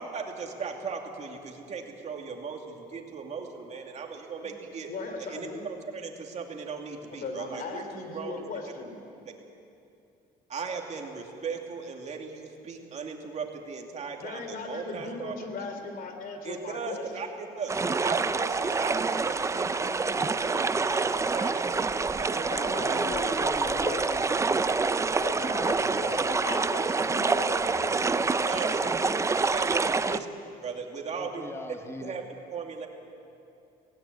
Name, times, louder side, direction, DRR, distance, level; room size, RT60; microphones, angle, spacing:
voice 1, 0.0-4.9 5.2-8.5 10.5-15.7 16.4-17.7 18.0-23.0 23.3-23.4 28.5-28.9 29.5-30.3 30.6-31.5 32.0-32.9, right 5 dB, 40° right, 2 dB, 2.6 m, -37 dB
voice 2, 4.9-5.6 7.2-9.0 14.2-17.3 22.4-24.3 25.2-29.3, left 4 dB, 60° left, 6 dB, 3.2 m, -38 dB
sound 1, 17.7-30.2, right 4 dB, 15° right, 0.5 m, -27 dB
voice 3, 22.7-26.6 30.0-30.2 31.1-32.2, left 2 dB, 15° left, 6 dB, 1.6 m, -42 dB
17.5 x 17.0 x 9.5 m, 2.7 s
cardioid pair, 110°, 17 cm